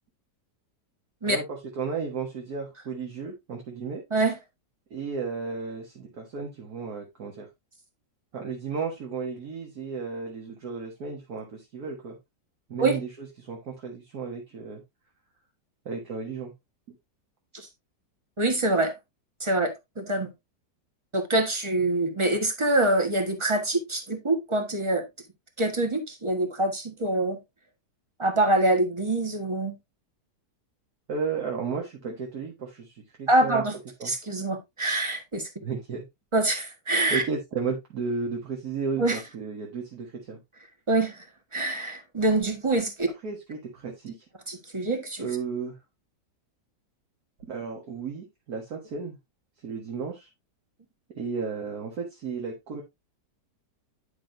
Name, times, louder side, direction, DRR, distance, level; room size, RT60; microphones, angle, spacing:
voice 1, 1.3-4.0 4.9-7.5 8.3-12.2 12.7-14.8 15.9-16.5 31.1-33.6 34.0-34.1 35.6-36.0 37.1-40.4 43.2-44.2 45.2-45.8 47.5-49.2 49.6-50.3 51.2-52.8, right 5 dB, 60° right, 2.0 m, -33 dB
voice 2, 18.4-18.9 19.4-20.3 21.1-25.0 25.6-27.4 28.2-29.7 33.3-33.8 34.0-35.5 36.3-37.2 39.0-39.2 40.9-41.3 41.5-43.1 44.5-45.3, right 2 dB, 20° right, 1.4 m, -25 dB
9.9 x 6.1 x 2.6 m
omnidirectional pair, 1.8 m